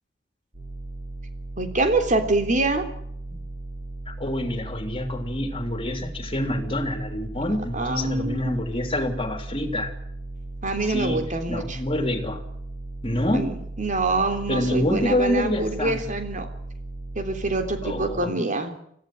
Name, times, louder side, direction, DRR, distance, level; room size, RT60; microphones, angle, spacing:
sound 1, 0.5-18.2, right 2 dB, 60° right, 6.7 m, -37 dB
voice 1, 1.6-2.8 3.3-3.4 7.7-8.6 10.6-11.8 13.3-16.5 17.1-18.8, right 2 dB, 40° right, 7 dB, 3.4 m, -25 dB
voice 2, 4.1-9.9 10.9-11.2 11.5-12.4 13.0-13.5 14.5-16.0 17.8-18.3, left 1 dB, 30° left, 7 dB, 3.4 m, -26 dB
24.0 x 16.0 x 7.9 m, 0.72 s
head